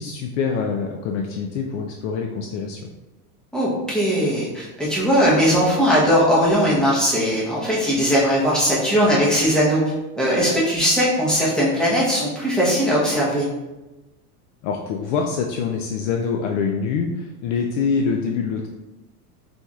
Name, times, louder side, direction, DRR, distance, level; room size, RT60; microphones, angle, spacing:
voice 1, 0.0-2.9 14.6-18.7, left 5 dB, 50° left, 2 dB, 0.5 m, -25 dB
voice 2, 3.5-9.8 10.2-13.5, equal, ahead, -6 dB, 1.0 m, -19 dB
4.5 x 4.2 x 2.4 m, 1.1 s
supercardioid pair, 140°, 47 cm